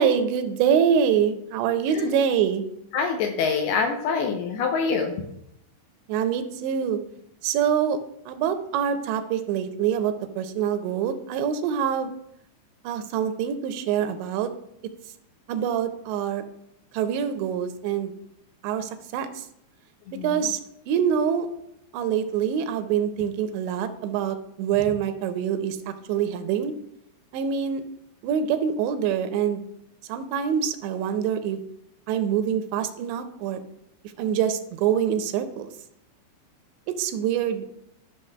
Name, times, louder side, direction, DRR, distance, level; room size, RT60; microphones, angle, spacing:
voice 1, 0.0-2.7 6.1-7.0 7.4-8.0 8.3-12.1 12.8-14.5 15.5-16.4 16.9-18.1 18.6-19.5 20.2-20.6 20.9-21.5 21.9-26.7 27.3-27.8 28.2-29.6 30.1-31.6 32.1-33.6 34.2-35.7 36.9-37.6, right 8 dB, 85° right, 9 dB, 2.7 m, -25 dB
voice 2, 2.9-5.1 20.2-20.3, left 5 dB, 80° left, 4 dB, 2.3 m, -25 dB
12.0 x 6.0 x 2.2 m, 0.76 s
omnidirectional pair, 5.1 m